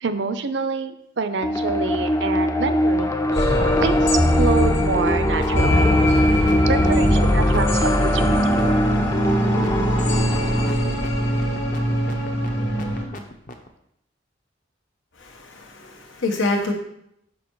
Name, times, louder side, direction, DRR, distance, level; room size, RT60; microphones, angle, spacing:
voice 1, 0.0-3.1 3.8-5.9 6.7-8.8, right 4 dB, 65° right, 10 dB, 0.6 m, -26 dB
sound 1, 1.4-10.7, left 1 dB, 15° left, 0.5 m, -23 dB
sound 2, 3.3-13.0, equal, 60° left, 1.7 m, -21 dB
sound 3, 5.1-5.5 5.7-13.7, left 2 dB, 45° left, 0.8 m, -38 dB
voice 2, 15.2-16.7, left 2 dB, 90° left, 2 dB, 1.4 m, -26 dB
6.1 x 5.8 x 4.7 m, 0.76 s
head